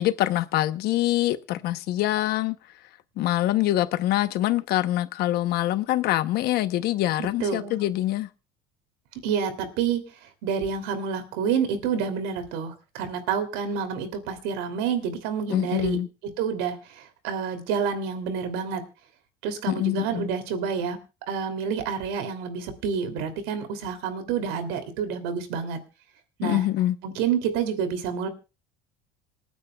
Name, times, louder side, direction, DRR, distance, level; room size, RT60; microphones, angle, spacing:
voice 1, 0.0-2.6 3.2-8.3 15.5-16.1 19.7-20.3 26.4-26.9, left 14 dB, 55° left, 0.9 m, -24 dB
voice 2, 7.2-7.8 9.2-10.0 10.4-18.8 19.4-21.0 21.3-25.8 26.4-26.6 27.0-28.3, right 6 dB, 85° right, 3.0 m, -28 dB
27.5 x 9.5 x 2.3 m
cardioid pair, 160°, 19 cm